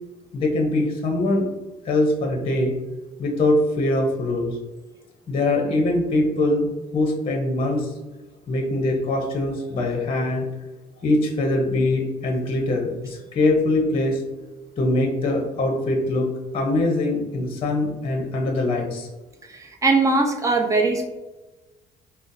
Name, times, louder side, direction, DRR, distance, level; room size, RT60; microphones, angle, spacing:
voice 1, 0.3-1.4 1.8-2.7 3.2-4.6 5.3-6.7 6.9-7.9 8.5-10.4 11.0-14.2 14.8-16.3 16.5-19.1, left 2 dB, 35° left, 1 dB, 0.8 m, -22 dB
voice 2, 19.5-21.1, right 3 dB, 20° right, 2 dB, 0.7 m, -20 dB
5.5 x 2.0 x 2.6 m, 1.1 s
cardioid pair, 110°, 17 cm